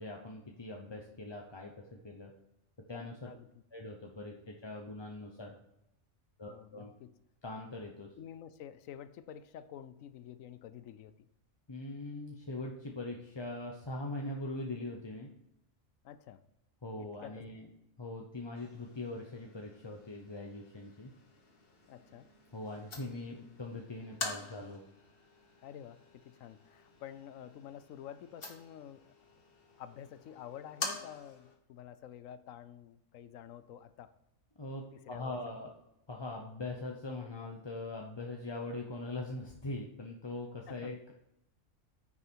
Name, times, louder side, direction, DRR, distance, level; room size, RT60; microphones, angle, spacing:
voice 1, 0.0-2.3 2.9-3.3 3.7-5.5 6.4-6.9 7.4-8.1 11.7-15.3 16.8-17.7 18.0-21.1 22.5-24.8 34.6-35.7 36.1-41.1, left 2 dB, 25° left, 0 dB, 0.8 m, -42 dB
voice 2, 6.5-7.2 8.2-11.3 16.0-16.4 17.0-17.4 21.9-22.3 25.6-29.1 29.8-34.1 34.9-35.4 40.7-40.9, left 9 dB, 80° left, 13 dB, 1.0 m, -49 dB
sound 1, 18.5-31.6, left 3 dB, 45° left, 1.6 m, -47 dB
9.6 x 6.2 x 4.5 m, 0.81 s
omnidirectional pair, 1.4 m